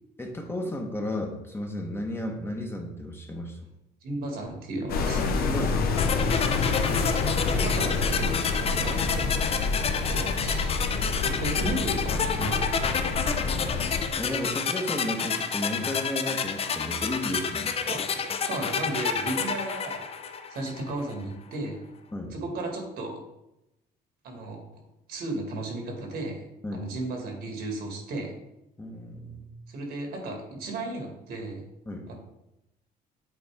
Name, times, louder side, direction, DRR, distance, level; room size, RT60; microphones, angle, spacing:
voice 1, 0.2-3.6 5.4-5.8 6.9-7.1 10.1-10.3 14.2-17.7 22.1-22.3 26.6-26.9 28.8-29.5 31.9-32.1, left 1 dB, 15° left, 2 dB, 0.9 m, -33 dB
voice 2, 4.0-5.2 6.9-7.1 7.5-8.3 8.7-9.4 10.1-10.8 11.2-12.7 17.9-20.0 20.5-21.8 22.3-23.2 24.2-24.6 25.1-26.4 26.7-28.3 29.7-31.6 32.1-32.2, right 2 dB, 70° right, 2 dB, 1.8 m, -34 dB
sound 1, 4.9-14.1, left 4 dB, 65° left, 0.9 m, -28 dB
sound 2, 6.0-20.9, left 6 dB, 35° left, 0.5 m, -29 dB
8.0 x 4.2 x 3.4 m, 0.90 s
cardioid pair, 110°, 17 cm